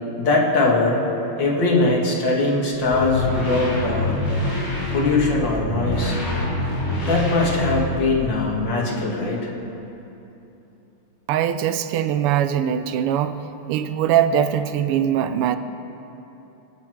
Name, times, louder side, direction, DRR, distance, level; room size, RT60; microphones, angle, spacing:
voice 1, 0.2-1.0 1.4-4.1 4.9-6.2 7.0-9.4, left 3 dB, 55° left, -3 dB, 2.6 m, -21 dB
sound 1, 2.9-8.2, left 1 dB, 30° left, 3.7 m, -25 dB
voice 2, 11.3-13.4 13.7-15.6, right 9 dB, 85° right, 10 dB, 1.6 m, -21 dB
22.0 x 8.5 x 4.6 m, 2.9 s
omnidirectional pair, 2.4 m